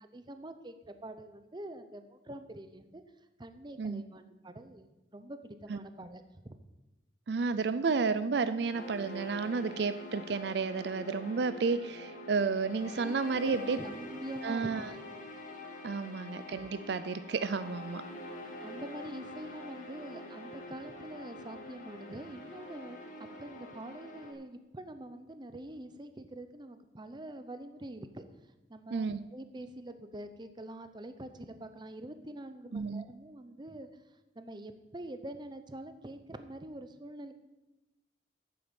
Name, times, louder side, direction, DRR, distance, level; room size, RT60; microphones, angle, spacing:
voice 1, 0.1-3.0 3.4-6.6 12.9-13.1 13.4-15.0 16.0-16.3 18.6-23.1 23.4-28.3 28.7-29.1 29.3-33.9 34.3-37.3, right 1 dB, 25° right, 9 dB, 0.7 m, -45 dB
voice 2, 7.3-13.8 14.4-14.9 15.8-18.0 28.9-29.2 32.7-33.0, right 4 dB, 65° right, 13 dB, 0.4 m, -31 dB
sound 1, 8.7-24.3, left 1 dB, 45° left, 1.5 m, -46 dB
8.9 x 7.7 x 7.1 m, 1.0 s
head